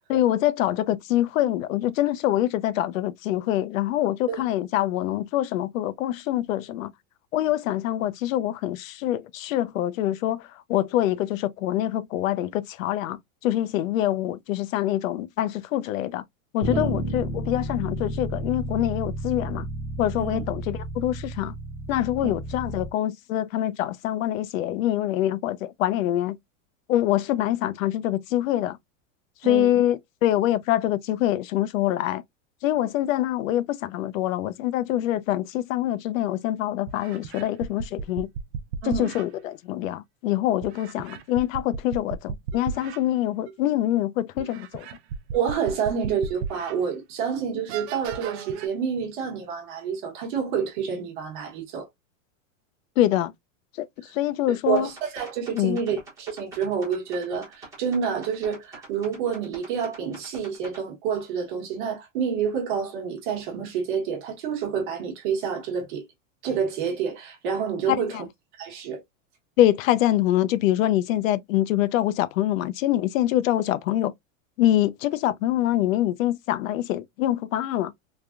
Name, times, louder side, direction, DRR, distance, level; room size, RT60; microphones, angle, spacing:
voice 1, 0.1-6.9 7.3-16.2 16.5-19.7 20.0-21.5 21.9-26.4 26.9-28.8 29.4-32.2 32.6-38.3 38.8-44.9 53.0-53.3 53.8-54.9 55.5-55.8 67.9-68.2 69.6-74.1 74.6-77.9, left 13 dB, 85° left, 0.5 m, -25 dB
Bass guitar, 16.6-22.9, right 1 dB, 25° left, 0.9 m, -32 dB
sound 1, 36.2-36.3 36.9-39.3 40.6-43.0 43.5-43.6 44.4-46.7 47.2-47.3 47.7-48.7, right 6 dB, 55° right, 0.5 m, -35 dB
voice 2, 45.3-51.9 54.7-66.0 66.4-68.2 68.6-69.0, right 7 dB, 40° right, 1.1 m, -28 dB
sound 2, 54.7-60.8, right 3 dB, 10° right, 0.9 m, -45 dB
3.3 x 2.2 x 2.4 m
supercardioid pair, 180°, 39 cm